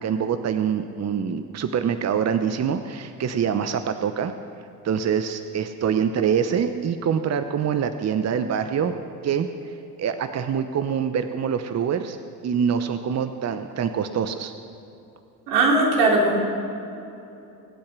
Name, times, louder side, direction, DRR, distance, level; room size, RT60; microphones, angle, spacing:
voice 1, 0.0-4.3 4.8-9.0 9.2-12.2 12.4-14.5, right 7 dB, 35° right, 9 dB, 0.9 m, -25 dB
voice 2, 15.5-16.4, right 2 dB, 80° right, -2 dB, 3.6 m, -19 dB
25.0 x 8.8 x 6.0 m, 2.8 s
hypercardioid pair, 65°, 46 cm